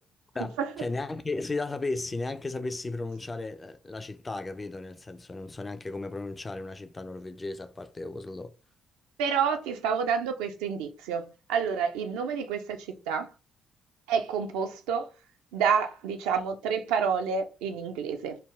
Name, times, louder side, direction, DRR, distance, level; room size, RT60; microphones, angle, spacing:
voice 1, 0.3-8.5, left 3 dB, 25° left, 0.3 m, -35 dB
voice 2, 9.2-13.3 14.1-15.1 15.5-18.4, right 6 dB, 65° right, 0.4 m, -29 dB
3.2 x 2.4 x 3.4 m
figure-of-eight pair, 40°, 0 cm